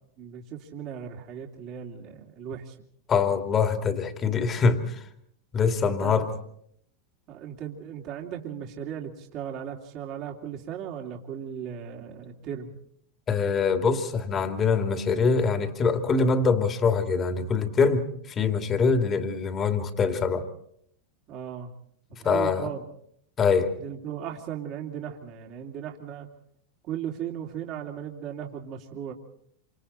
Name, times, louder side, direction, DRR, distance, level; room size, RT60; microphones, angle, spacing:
voice 1, 0.2-2.8 5.8-6.3 7.3-12.7 21.3-21.7 22.1-22.8 23.8-26.3 26.8-29.1, right 9 dB, 45° right, 3.0 m, -37 dB
voice 2, 3.1-5.0 5.5-6.3 13.3-20.5 22.2-22.7 23.4-23.7, left 5 dB, 30° left, 2.8 m, -24 dB
28.0 x 26.5 x 4.4 m
hypercardioid pair, 95°, 0 cm